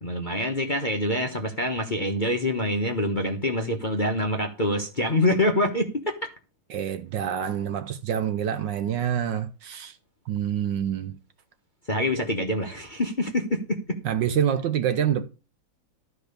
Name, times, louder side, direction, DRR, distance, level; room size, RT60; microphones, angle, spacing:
voice 1, 0.0-6.2 11.9-14.0, left 1 dB, 30° left, 1.0 m, -25 dB
voice 2, 6.7-10.0 10.3-11.2 14.0-15.3, right 9 dB, 70° right, 1.2 m, -26 dB
12.5 x 4.8 x 6.6 m
omnidirectional pair, 2.4 m